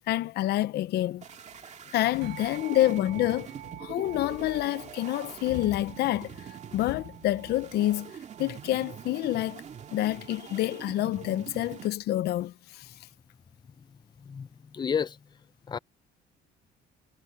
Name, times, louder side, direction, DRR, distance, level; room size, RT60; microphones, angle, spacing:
voice 1, 0.1-1.2 1.9-3.5 3.8-6.3 6.7-8.1 8.4-9.6 9.9-12.9, left 15 dB, 75° left, 0.8 m, -27 dB
sound 1, 1.2-11.9, right 8 dB, 45° right, 2.1 m, -45 dB
sound 2, 2.2-11.9, right 15 dB, 75° right, 7.4 m, -49 dB
voice 2, 13.8-15.4 15.7-15.8, left 7 dB, 25° left, 0.7 m, -33 dB
cardioid pair, 110°, 17 cm